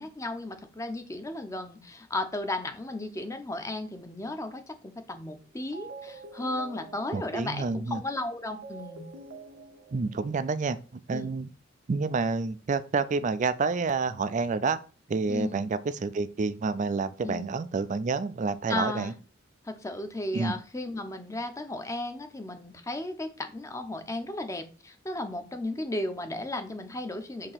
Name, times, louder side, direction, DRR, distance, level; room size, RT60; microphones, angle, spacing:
voice 1, 0.0-9.1 11.1-11.4 15.3-15.6 17.2-17.5 18.7-19.1 19.6-27.5, left 2 dB, 15° left, 0.7 m, -35 dB
sound 1, 5.0-5.4 5.7-10.8, right 3 dB, 85° right, 1.0 m, -47 dB
voice 2, 7.1-8.0 9.9-10.8 11.1-11.5 11.9-14.8 15.1-19.1 20.3-20.5, right 4 dB, 40° right, 0.4 m, -29 dB
6.6 x 2.9 x 5.7 m
head